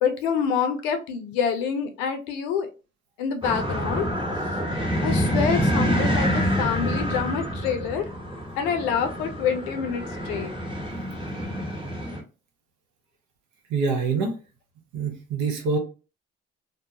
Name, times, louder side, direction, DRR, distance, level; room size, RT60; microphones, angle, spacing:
voice 1, 0.0-2.7 3.2-4.1 5.0-8.1 8.6-10.6, left 7 dB, 90° left, 7 dB, 0.5 m, -26 dB
sound 1, 3.4-12.2, equal, 15° right, 1.0 m, -27 dB
voice 2, 13.7-14.3 14.9-15.8, right 4 dB, 75° right, 4 dB, 0.8 m, -25 dB
2.2 x 2.0 x 2.8 m, 0.33 s
hypercardioid pair, 55°, 29 cm